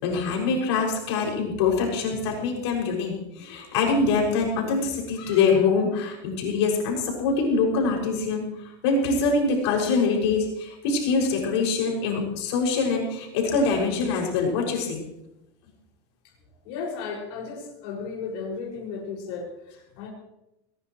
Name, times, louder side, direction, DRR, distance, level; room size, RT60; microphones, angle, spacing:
voice 1, 0.0-15.0, left 4 dB, 85° left, -1 dB, 6.8 m, -24 dB
voice 2, 16.6-20.1, left 5 dB, 65° left, -3 dB, 6.3 m, -34 dB
22.0 x 20.0 x 3.3 m, 0.89 s
supercardioid pair, 160°, 14 cm